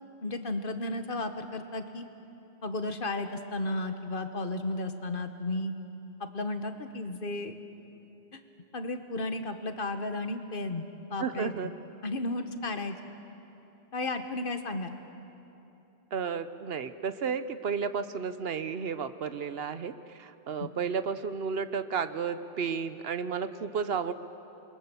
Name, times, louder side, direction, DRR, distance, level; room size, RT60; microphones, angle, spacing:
voice 1, 0.2-2.1 2.6-5.7 6.2-7.5 8.3-8.4 8.7-10.8 11.1-11.5 12.0-13.0 13.9-14.9 20.6-20.7, left 2 dB, 55° left, 8 dB, 1.4 m, -33 dB
voice 2, 11.2-11.7 16.1-24.1, right 6 dB, 70° right, 12 dB, 1.0 m, -32 dB
28.5 x 22.0 x 7.0 m, 3.0 s
omnidirectional pair, 1.1 m